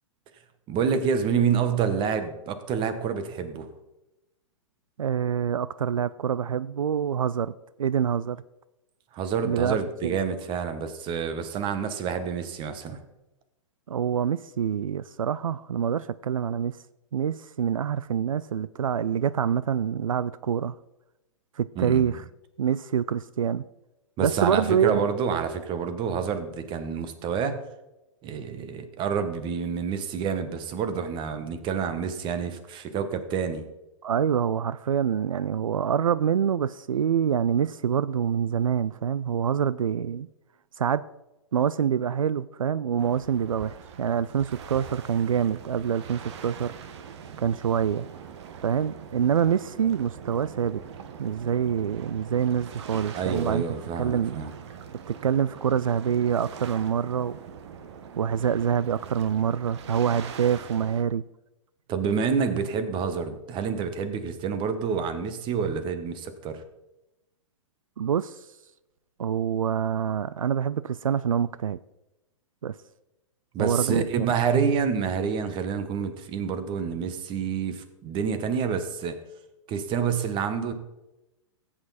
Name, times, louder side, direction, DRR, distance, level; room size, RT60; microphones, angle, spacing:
voice 1, 0.7-3.7 9.1-13.0 21.7-22.2 24.2-27.6 28.2-33.6 53.1-54.5 61.9-66.6 73.5-79.2 79.7-80.7, right 6 dB, 30° right, 1.4 m, -28 dB
voice 2, 5.0-7.5 7.8-8.4 9.5-9.8 10.0-10.2 13.9-16.8 17.1-20.8 21.6-22.2 22.6-23.7 24.2-25.2 34.0-40.3 40.8-41.0 41.5-46.7 47.4-48.1 48.6-50.8 51.2-53.6 54.0-54.5 55.1-57.4 58.2-61.2 68.0-68.4 69.2-71.8 72.6-72.7 73.6-74.0, right 8 dB, 90° right, 0.4 m, -26 dB
sound 1, 43.0-61.0, right 7 dB, 55° right, 1.3 m, -43 dB
15.0 x 8.6 x 4.2 m
hypercardioid pair, 120°, 17 cm